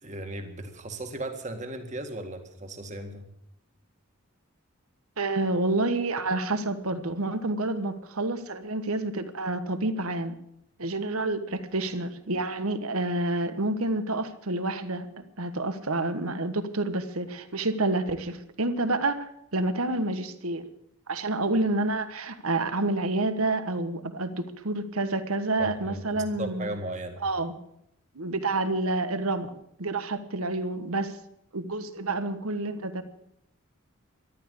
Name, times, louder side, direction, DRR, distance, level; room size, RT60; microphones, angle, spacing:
voice 1, 0.0-3.3 25.6-27.2, right 1 dB, 35° right, 6 dB, 2.0 m, -36 dB
voice 2, 5.2-10.3 10.8-20.6 21.1-26.7 27.2-27.5 28.1-29.5 29.8-31.2 31.5-33.0, right 2 dB, 85° right, 10 dB, 1.4 m, -28 dB
13.5 x 12.0 x 8.4 m, 0.77 s
head